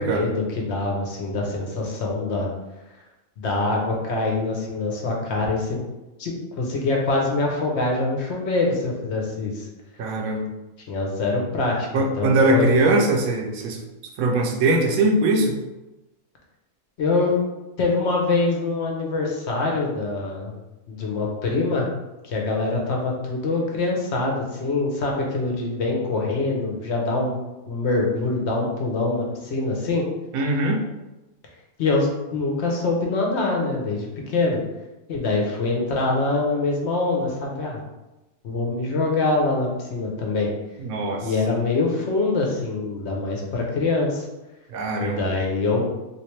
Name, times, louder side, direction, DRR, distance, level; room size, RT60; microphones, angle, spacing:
voice 1, 0.0-2.5 3.4-5.9 6.2-9.7 10.9-12.8 17.0-17.4 17.8-20.5 20.9-21.9 22.3-27.4 27.7-30.1 31.8-34.6 35.1-37.8 38.4-40.5 41.2-44.2 45.0-45.8, left 3 dB, 55° left, -1 dB, 0.9 m, -24 dB
voice 2, 10.0-10.5 11.9-13.8 14.2-15.5 30.3-30.8 40.8-41.3 44.7-45.2, right 2 dB, 75° right, 2 dB, 1.0 m, -21 dB
3.3 x 2.8 x 3.1 m, 1.0 s
omnidirectional pair, 1.5 m